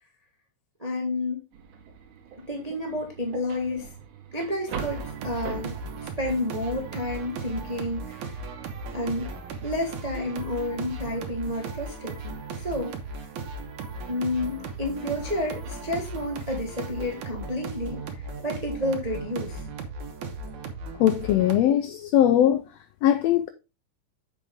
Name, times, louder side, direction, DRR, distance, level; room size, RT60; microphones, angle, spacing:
voice 1, 0.8-1.4 2.5-3.9 4.3-5.7 6.0-8.4 8.9-9.3 9.6-13.0 14.1-19.6, left 1 dB, 30° right, 0.7 m, -30 dB
sound 1, 1.5-11.7 15.1-16.8, right 6 dB, 90° right, 2.8 m, -43 dB
sound 2, 4.7-21.6, right 3 dB, 75° right, 2.5 m, -37 dB
voice 2, 21.0-22.7 23.0-23.5, left 11 dB, 85° left, 1.4 m, -20 dB
7.0 x 6.6 x 3.6 m
omnidirectional pair, 3.5 m